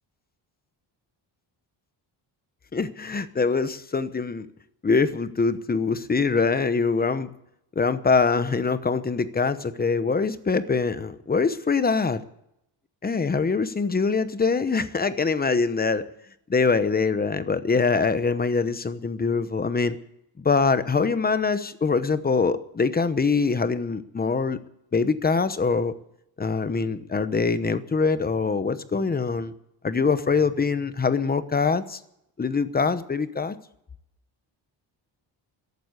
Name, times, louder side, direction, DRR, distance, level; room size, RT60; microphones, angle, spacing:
voice 1, 2.7-4.5 4.8-7.3 7.8-12.2 13.0-16.1 16.5-20.0 20.4-24.6 24.9-25.9 26.4-29.5 29.8-32.0 32.4-33.6, left 4 dB, 20° left, 13 dB, 0.9 m, -24 dB
14.0 x 12.0 x 8.1 m, 0.78 s
cardioid pair, 140°, 45 cm